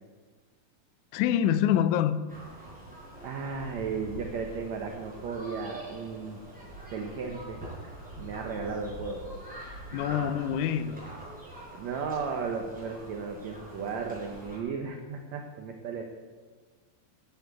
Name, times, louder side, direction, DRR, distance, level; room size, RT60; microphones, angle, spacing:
voice 1, 1.1-2.2 9.9-11.1, left 10 dB, 80° left, 13 dB, 1.8 m, -26 dB
sound 1, 2.3-14.6, right 1 dB, ahead, 5.2 m, -44 dB
voice 2, 3.2-6.4 6.9-7.6 8.2-9.3 9.9-10.1 11.7-16.0, right 5 dB, 65° right, 2 dB, 2.0 m, -35 dB
13.0 x 8.7 x 8.2 m, 1.5 s
omnidirectional pair, 4.1 m